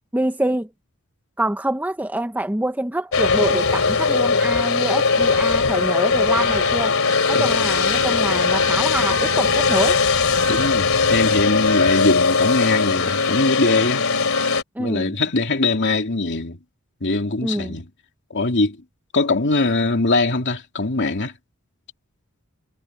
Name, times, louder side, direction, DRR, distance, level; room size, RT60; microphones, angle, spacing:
voice 1, 0.1-0.7 1.4-7.0 7.3-10.0 14.8-15.1 17.4-17.8, right 1 dB, 10° right, 0.7 m, -25 dB
sound 1, 3.1-14.6, left 4 dB, 70° left, 2.8 m, -19 dB
voice 2, 10.5-14.0 14.8-16.6 17.0-17.9 18.3-18.8 19.1-21.3, left 2 dB, 55° left, 2.8 m, -22 dB
head